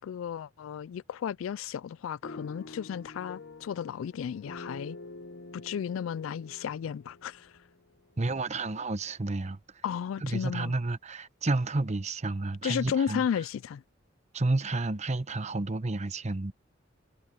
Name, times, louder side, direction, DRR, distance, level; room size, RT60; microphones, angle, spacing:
voice 1, 0.0-5.0 5.5-7.5 9.8-10.7 12.6-13.8, left 8 dB, 85° left, 0.3 m, -33 dB
sound 1, 2.2-8.3, left 3 dB, 60° left, 0.9 m, -47 dB
voice 2, 8.2-9.6 10.2-13.2 14.3-16.5, right 2 dB, 35° right, 0.9 m, -30 dB
head